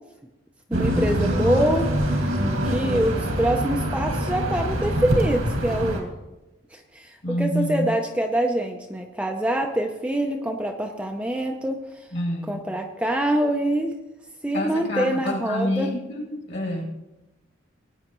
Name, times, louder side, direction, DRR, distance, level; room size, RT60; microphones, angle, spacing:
voice 1, 0.7-1.9 2.2-2.3 2.6-6.1 6.7-11.8 12.5-13.9 14.4-15.9, right 1 dB, 5° right, 3 dB, 0.6 m, -25 dB
sound 1, 0.7-6.0, equal, 90° right, 2.2 m, -24 dB
voice 2, 7.2-7.9 12.1-12.6 14.5-16.8, equal, 55° left, -1 dB, 2.9 m, -27 dB
18.5 x 9.1 x 3.1 m, 1.0 s
head